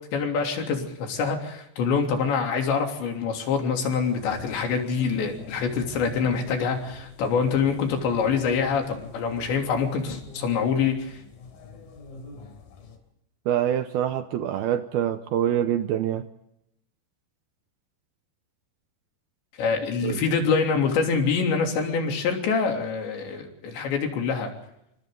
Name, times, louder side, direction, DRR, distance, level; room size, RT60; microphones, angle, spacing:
voice 1, 0.1-11.2 19.6-24.5, left 5 dB, 75° left, 3 dB, 5.4 m, -25 dB
sound 1, 4.0-13.0, left 3 dB, 55° left, 4.8 m, -45 dB
voice 2, 13.5-16.2 20.0-20.2, right 10 dB, 75° right, 9 dB, 2.4 m, -25 dB
28.0 x 25.0 x 3.9 m, 0.81 s
omnidirectional pair, 5.2 m